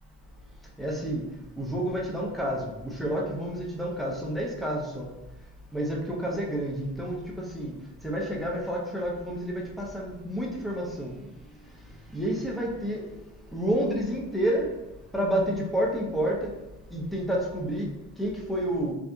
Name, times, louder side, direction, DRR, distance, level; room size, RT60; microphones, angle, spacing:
voice 1, 0.8-1.2 1.6-5.1 5.7-7.7 8.0-11.1 12.1-13.0 13.5-14.7 15.1-16.5 16.9-17.9 18.2-18.9, equal, ahead, -3 dB, 0.6 m, -29 dB
2.7 x 2.4 x 2.3 m, 0.96 s
cardioid pair, 90°, 30 cm